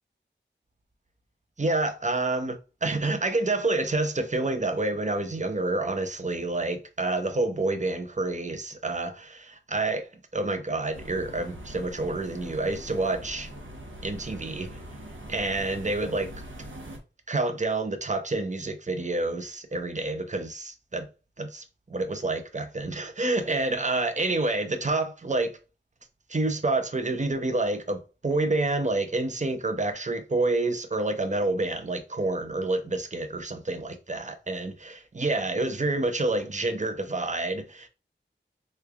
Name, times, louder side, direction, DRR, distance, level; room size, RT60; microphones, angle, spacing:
voice 1, 1.6-13.5 14.0-14.7 15.3-16.3 17.3-21.1 21.4-25.5 26.3-37.9, right 2 dB, 40° right, 0.6 m, -28 dB
sound 1, 10.9-17.0, equal, 85° right, 0.8 m, -42 dB
3.2 x 2.3 x 3.4 m
wide cardioid pair, 60°, 20 cm